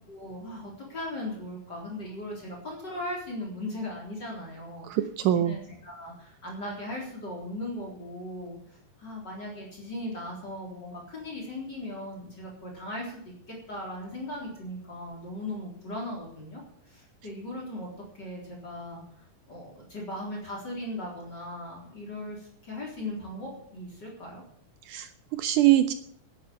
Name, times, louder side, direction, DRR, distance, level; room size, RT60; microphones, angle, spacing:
voice 1, 0.1-8.6 9.0-16.6 16.9-17.9 18.1-24.4, left 1 dB, 30° left, -3 dB, 4.1 m, -38 dB
voice 2, 4.9-5.5 24.9-25.9, right 13 dB, 80° right, 11 dB, 2.1 m, -23 dB
10.5 x 10.5 x 8.7 m, 0.65 s
omnidirectional pair, 3.8 m